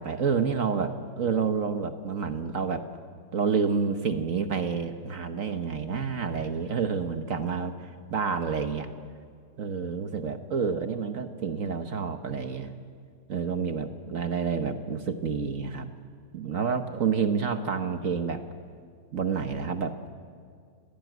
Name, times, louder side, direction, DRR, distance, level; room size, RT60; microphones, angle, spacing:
voice 1, 0.0-2.8 3.3-8.9 9.6-12.7 13.3-15.9 16.3-18.4 19.1-20.1, right 6 dB, 50° right, 8 dB, 1.2 m, -29 dB
28.5 x 17.0 x 9.3 m, 2.1 s
omnidirectional pair, 2.3 m